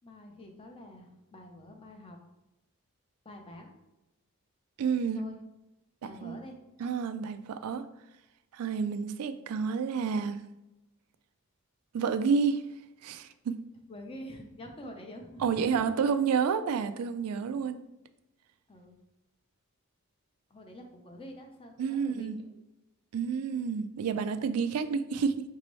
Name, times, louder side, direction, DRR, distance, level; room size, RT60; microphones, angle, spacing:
voice 1, 0.0-2.2 3.2-3.7 5.1-5.4 6.0-6.6 13.9-16.1 18.7-19.0 20.5-22.6, left 1 dB, 25° left, 3 dB, 0.6 m, -47 dB
voice 2, 4.8-5.2 6.2-6.4 6.8-7.8 8.5-10.4 11.9-12.6 13.0-13.6 15.4-17.8 21.8-22.4 23.1-25.4, right 6 dB, 80° right, 10 dB, 0.3 m, -29 dB
5.2 x 2.7 x 3.1 m, 0.96 s
head